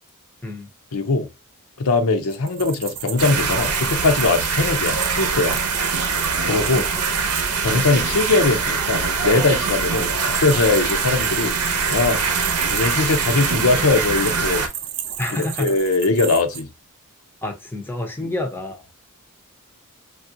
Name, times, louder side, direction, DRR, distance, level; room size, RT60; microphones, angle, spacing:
voice 1, 0.9-1.3 1.8-5.6 6.5-6.8 7.6-10.1 10.4-12.2 12.7-14.6 15.3-16.7 18.2-18.3, left 3 dB, 70° left, 0.6 m, -21 dB
sound 1, 2.3-7.6 9.5-16.6, right 10 dB, 55° right, 0.5 m, -33 dB
sound 2, 3.2-14.7, right 5 dB, 80° right, 0.8 m, -23 dB
voice 2, 6.5-6.9 7.7-8.0 15.2-15.7 17.4-18.8, left 1 dB, 10° left, 0.6 m, -29 dB
3.4 x 2.4 x 2.6 m
head